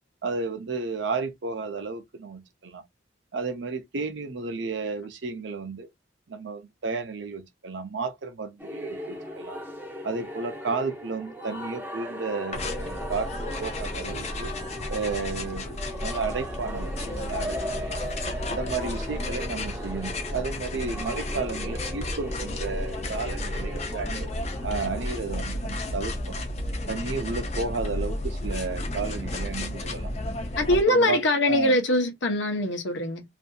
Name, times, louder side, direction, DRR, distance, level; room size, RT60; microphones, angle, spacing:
voice 1, 0.2-2.8 3.3-5.9 6.3-9.6 10.0-13.3 13.6-14.5 14.9-18.0 18.5-24.3 24.6-26.4 26.9-30.2 30.7-31.8, right 4 dB, 65° right, 0.6 m, -33 dB
sound 1, 8.6-25.2, equal, 10° right, 0.7 m, -38 dB
sound 2, 12.5-30.8, left 1 dB, 35° left, 0.5 m, -32 dB
voice 2, 30.6-33.2, left 1 dB, 65° left, 0.8 m, -23 dB
2.7 x 2.6 x 2.2 m
head